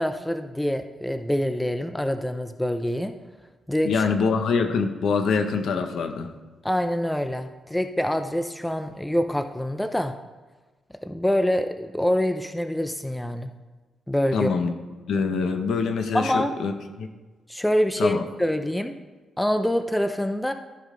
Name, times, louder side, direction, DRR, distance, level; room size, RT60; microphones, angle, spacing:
voice 1, 0.0-3.1 3.7-4.0 6.6-10.2 11.0-13.5 14.1-14.5 16.1-16.5 17.5-18.9 19.4-20.5, equal, 5° left, 7 dB, 0.4 m, -25 dB
voice 2, 3.8-6.3 14.3-14.7 15.1-16.7 17.0-17.1 18.0-18.2, left 5 dB, 70° left, 7 dB, 0.9 m, -24 dB
14.0 x 5.6 x 3.7 m, 1.3 s
wide cardioid pair, 165°, 0 cm